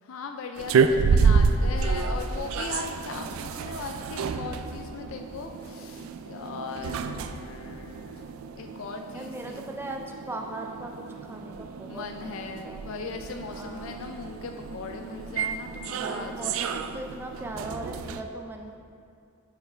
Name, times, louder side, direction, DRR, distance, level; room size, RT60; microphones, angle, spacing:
voice 1, 0.1-8.3 8.6-9.6 11.9-16.6, left 4 dB, 75° left, 4 dB, 0.4 m, -38 dB
sound 1, 0.6-18.2, right 5 dB, 80° right, 0.3 m, -29 dB
voice 2, 6.4-6.9 9.1-12.8 13.4-14.0 15.9-18.8, right 2 dB, 10° right, 2 dB, 0.4 m, -39 dB
5.7 x 5.6 x 4.3 m, 2.6 s
head